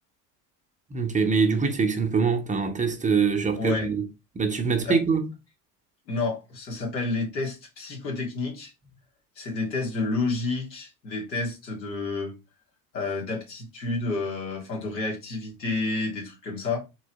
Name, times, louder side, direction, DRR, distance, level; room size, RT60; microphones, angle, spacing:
voice 1, 0.9-4.1 4.3-5.3, right 5 dB, 15° right, 0.7 m, -24 dB
voice 2, 3.5-3.9 4.8-5.0 6.1-8.7 9.4-12.3 12.9-16.8, left 3 dB, 85° left, 2.0 m, -30 dB
3.8 x 3.1 x 4.0 m
hypercardioid pair, 85°, 50 cm